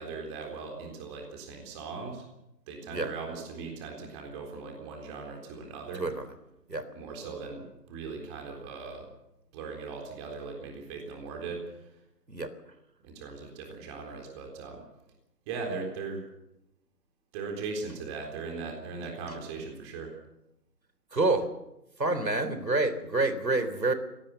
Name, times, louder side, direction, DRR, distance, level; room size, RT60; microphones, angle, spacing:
voice 1, 0.0-2.2 2.7-6.0 6.9-9.1 9.5-11.6 13.0-14.8 15.5-16.2 17.3-20.1, right 4 dB, 15° right, 2 dB, 3.9 m, -39 dB
voice 2, 21.1-21.5 22.0-23.9, right 2 dB, 90° right, 11 dB, 3.9 m, -27 dB
25.5 x 18.0 x 6.9 m, 0.89 s
figure-of-eight pair, 155°, 48 cm